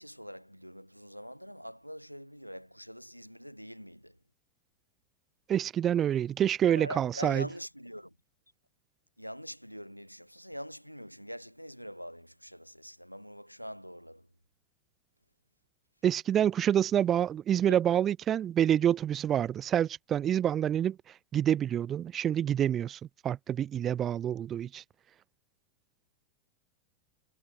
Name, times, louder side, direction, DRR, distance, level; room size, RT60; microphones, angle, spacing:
voice 1, 0.0-4.2 6.7-8.1 9.2-14.3 17.7-17.8, equal, 90° left, 0.7 m, -44 dB
voice 2, 5.5-7.5 16.0-21.0 21.3-24.8, right 10 dB, 25° right, 0.3 m, -27 dB
figure-of-eight pair, 90°, 0 cm